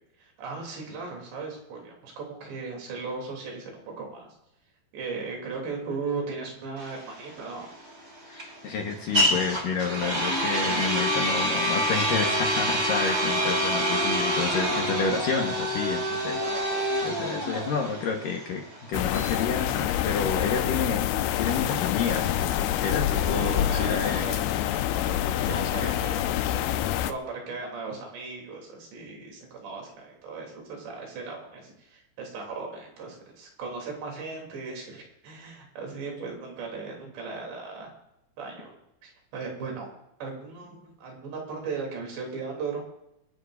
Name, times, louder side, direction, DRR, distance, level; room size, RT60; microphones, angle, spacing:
voice 1, 0.2-4.3 4.9-7.7 16.4-16.8 23.4-24.4 25.5-26.8 27.1-37.9 38.4-38.8 39.0-39.9 40.2-42.8, right 4 dB, 75° right, 0 dB, 5.4 m, -37 dB
sound 1, 6.8-20.6, equal, 15° right, 2.9 m, -27 dB
voice 2, 8.2-16.7 17.0-21.1 21.4-24.2 24.8-25.9, left 5 dB, 65° left, 1 dB, 2.5 m, -30 dB
sound 2, 18.9-27.1, left 12 dB, 80° left, 2.3 m, -27 dB
sound 3, 23.1-25.1, equal, 10° left, 4.4 m, -39 dB
27.5 x 11.5 x 2.6 m, 0.83 s
omnidirectional pair, 5.0 m